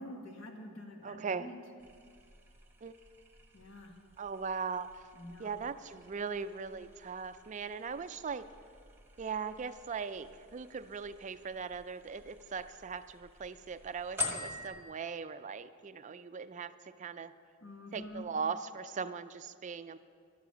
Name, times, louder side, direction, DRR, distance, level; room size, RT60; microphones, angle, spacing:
voice 1, 0.0-1.6 3.5-4.0 5.1-5.6 17.6-18.3, left 1 dB, 65° left, 2 dB, 1.7 m, -47 dB
voice 2, 1.0-1.5 2.8-2.9 4.2-4.9 5.4-8.4 9.2-16.7 17.0-17.3 17.9-20.0, right 5 dB, 35° right, 12 dB, 0.4 m, -39 dB
sound 1, 1.8-14.8, left 3 dB, 10° right, 1.1 m, -47 dB
12.0 x 11.0 x 6.8 m, 2.1 s
head